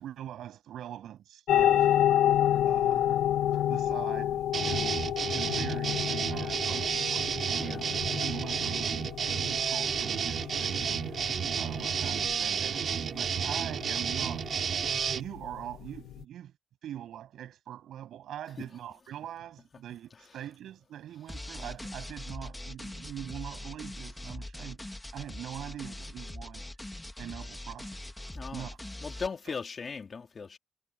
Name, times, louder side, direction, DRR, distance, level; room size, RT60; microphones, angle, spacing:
voice 1, 0.0-1.9 2.6-3.1 3.7-5.1 5.3-14.5 15.1-16.5 16.8-26.6 27.2-28.0 28.5-28.8, right 11 dB, 75° right, 7.7 m, -43 dB
sound 1, 1.5-16.2, left 11 dB, 75° left, 1.8 m, -30 dB
sound 2, 4.5-15.2, right 7 dB, 55° right, 3.6 m, -31 dB
voice 2, 20.1-20.4 28.3-28.7 29.0-30.6, left 5 dB, 40° left, 2.7 m, -38 dB
sound 3, 21.3-29.3, left 1 dB, 10° left, 2.1 m, -42 dB
cardioid pair, 95°, 0 cm